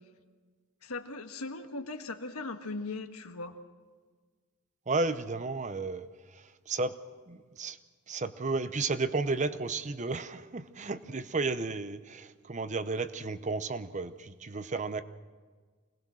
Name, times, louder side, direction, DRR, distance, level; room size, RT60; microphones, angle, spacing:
voice 1, 0.8-3.6, left 3 dB, 80° left, 6 dB, 1.6 m, -39 dB
voice 2, 4.9-7.0 7.3-7.8 8.1-15.0, right 3 dB, 35° right, 13 dB, 0.7 m, -33 dB
25.0 x 19.0 x 6.4 m, 1.5 s
head